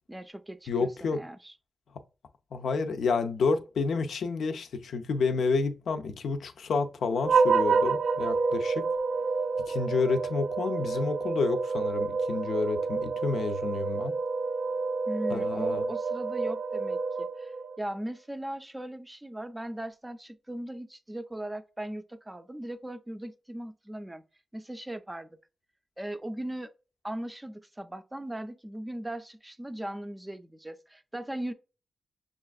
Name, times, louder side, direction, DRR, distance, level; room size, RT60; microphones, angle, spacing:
voice 1, 0.1-1.5 15.1-24.2 24.5-25.3 26.0-26.7 27.0-31.5, right 1 dB, 15° right, 0.4 m, -38 dB
voice 2, 0.7-1.2 2.5-8.9 9.7-14.1 15.3-15.9, left 4 dB, 90° left, 0.5 m, -29 dB
sound 1, 7.2-17.8, right 4 dB, 60° right, 0.6 m, -28 dB
6.5 x 2.4 x 2.3 m
wide cardioid pair, 105°, 0 cm